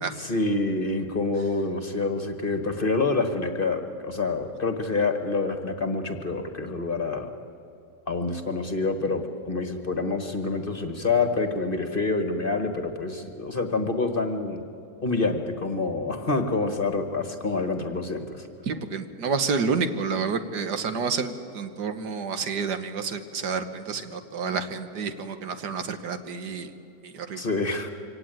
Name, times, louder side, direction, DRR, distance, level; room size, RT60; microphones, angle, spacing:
voice 1, 0.2-7.3 8.1-14.6 15.0-18.5 27.4-27.9, left 3 dB, 35° left, 7 dB, 1.4 m, -27 dB
voice 2, 18.6-26.7 27.0-27.4, right 5 dB, 70° right, 9 dB, 1.8 m, -29 dB
24.0 x 17.5 x 9.2 m, 2.7 s
omnidirectional pair, 1.9 m